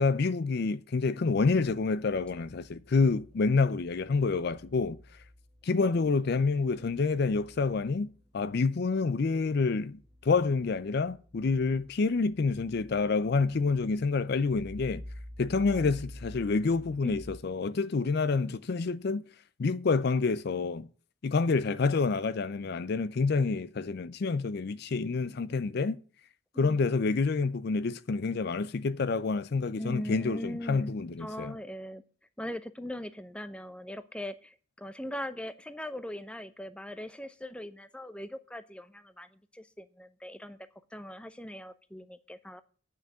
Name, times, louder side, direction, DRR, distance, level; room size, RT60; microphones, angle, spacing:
voice 1, 0.0-5.0 5.6-15.0 15.4-19.2 19.6-20.9 21.2-26.0 26.6-31.6, left 4 dB, 50° left, 0.4 m, -28 dB
sound 1, 2.0-17.4, left 1 dB, 15° right, 2.0 m, -50 dB
voice 2, 26.5-26.9 29.8-32.0 32.4-40.6 40.9-42.6, equal, 5° left, 0.6 m, -40 dB
8.9 x 6.4 x 8.4 m
head